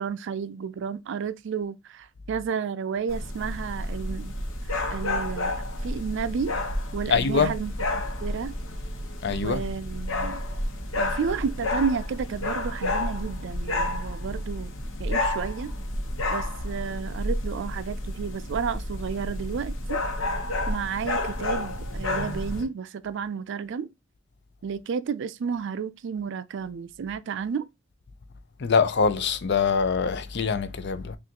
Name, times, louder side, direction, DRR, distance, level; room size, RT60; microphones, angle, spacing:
voice 1, 0.0-4.4 4.9-5.6 5.8-6.6 6.9-8.6 9.3-10.4 11.0-14.7 15.0-15.7 16.3-20.0 20.7-23.9 24.6-27.7, right 6 dB, 65° right, 0.4 m, -32 dB
sound 1, 3.1-22.6, left 1 dB, 80° left, 1.0 m, -30 dB
voice 2, 7.1-7.5 9.2-9.6 28.6-31.2, left 5 dB, 60° left, 0.5 m, -24 dB
6.0 x 2.5 x 2.8 m
head